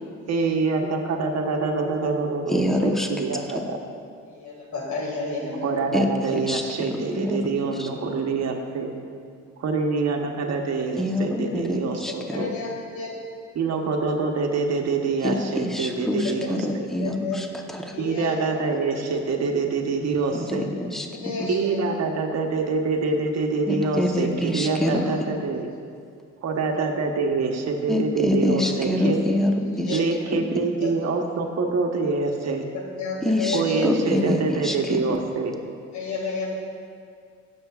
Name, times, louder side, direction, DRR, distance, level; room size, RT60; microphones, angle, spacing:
voice 1, 0.3-3.8 5.6-8.9 9.6-12.5 13.5-16.9 18.0-20.7 21.5-25.7 26.4-29.3 29.9-32.7 33.5-35.6, right 4 dB, 60° right, 3 dB, 1.1 m, -25 dB
voice 2, 2.5-3.5 5.9-7.4 7.8-7.9 11.0-12.5 15.2-17.9 20.3-21.1 21.4-21.5 23.7-25.1 27.9-30.0 30.3-30.4 33.2-35.0, left 1 dB, ahead, 2 dB, 0.9 m, -26 dB
voice 3, 4.3-5.7 11.5-11.6 12.1-13.2 13.7-13.8 16.4-17.4 17.9-18.6 20.8-20.9 21.1-21.6 24.7-25.1 29.0-29.1 29.9-30.1 30.8-30.9 33.0-33.9 35.9-36.5, left 3 dB, 70° left, -1 dB, 2.0 m, -31 dB
16.0 x 7.1 x 2.4 m, 2.2 s
cardioid pair, 90°, 30 cm